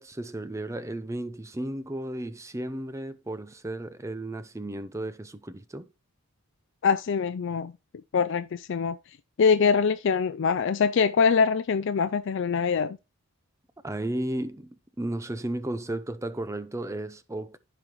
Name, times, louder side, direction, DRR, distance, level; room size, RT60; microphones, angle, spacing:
voice 1, 0.0-5.9 13.8-17.6, right 1 dB, 15° right, 0.5 m, -34 dB
voice 2, 6.8-7.7 8.1-9.0 9.4-13.0, left 6 dB, 55° left, 0.4 m, -23 dB
14.5 x 5.1 x 3.0 m
head